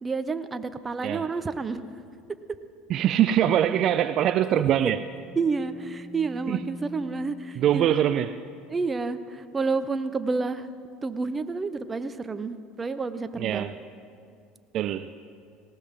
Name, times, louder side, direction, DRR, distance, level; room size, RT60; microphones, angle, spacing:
voice 1, 0.0-1.8 5.4-8.0 8.7-10.7 11.0-13.7, right 4 dB, 25° right, 11 dB, 0.9 m, -29 dB
voice 2, 2.9-5.0 6.5-6.6 7.6-8.4 13.4-13.7 14.7-15.2, right 10 dB, 55° right, 11 dB, 0.5 m, -23 dB
sound 1, 3.5-7.3, equal, 90° left, 3.0 m, -46 dB
19.0 x 18.0 x 3.8 m, 2.4 s
hypercardioid pair, 80°, 0 cm